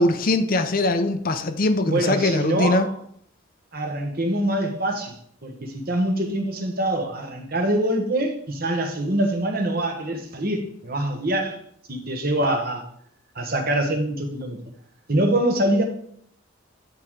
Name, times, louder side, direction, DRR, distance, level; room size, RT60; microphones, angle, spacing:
voice 1, 0.0-2.9, left 2 dB, 45° left, 0.6 m, -21 dB
voice 2, 1.8-3.0 3.7-5.1 5.4-11.6 11.9-12.8 13.3-14.6 15.1-15.8, right 1 dB, 45° right, 1.2 m, -24 dB
9.6 x 3.7 x 4.7 m
head